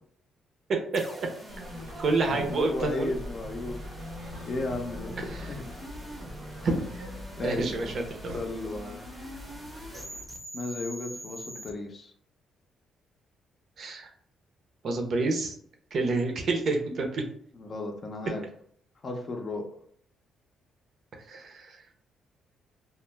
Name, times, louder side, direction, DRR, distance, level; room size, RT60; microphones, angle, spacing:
voice 1, 0.7-1.3 2.0-3.1 6.6-6.7 7.4-8.4 13.8-14.1 14.8-15.5 15.9-17.2 21.3-21.8, right 3 dB, 55° right, 4 dB, 0.6 m, -28 dB
sound 1, 0.9-11.7, equal, 10° right, 0.6 m, -44 dB
sound 2, 1.5-10.2, left 1 dB, 80° right, 0.9 m, -43 dB
voice 2, 2.2-3.8 4.5-5.7 7.4-8.0 8.3-9.0 10.5-12.1 17.5-18.5 19.0-19.7, left 2 dB, 45° left, 2 dB, 0.5 m, -34 dB
2.2 x 2.0 x 3.1 m, 0.62 s
cardioid pair, 90°, 0 cm